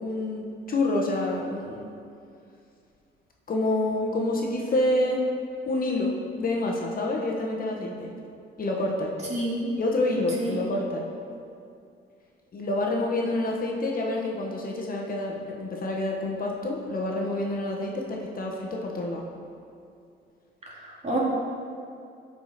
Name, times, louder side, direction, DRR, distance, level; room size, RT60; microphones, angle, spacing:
voice 1, 0.0-1.9 3.5-5.2 5.7-6.1 6.4-8.1 8.6-9.1 9.8-11.1 12.5-19.2, left 2 dB, 45° left, -1 dB, 1.3 m, -28 dB
voice 2, 9.3-9.7 10.4-10.6 20.7-21.3, right 2 dB, 35° right, -4 dB, 2.3 m, -29 dB
12.0 x 5.0 x 4.2 m, 2.5 s
cardioid pair, 90°, 20 cm